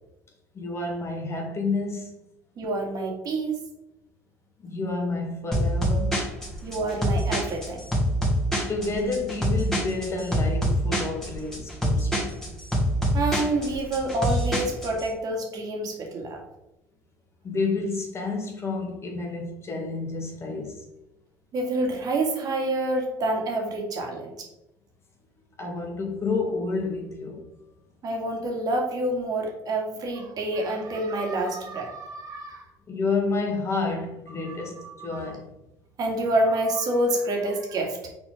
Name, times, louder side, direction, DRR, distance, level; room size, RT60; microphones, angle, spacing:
voice 1, 0.5-2.1 4.6-6.3 8.7-12.4 17.4-20.8 25.6-27.4 32.9-35.5, left 3 dB, 35° left, 1.8 m, -29 dB
voice 2, 2.6-3.6 6.6-7.8 13.1-16.4 21.5-24.5 28.0-32.7 34.4-35.3 36.0-38.1, right 1 dB, 50° right, 2.2 m, -28 dB
sound 1, 5.5-15.0, equal, 5° left, 2.4 m, -25 dB
5.8 x 4.2 x 5.0 m
supercardioid pair, 90°, 8 cm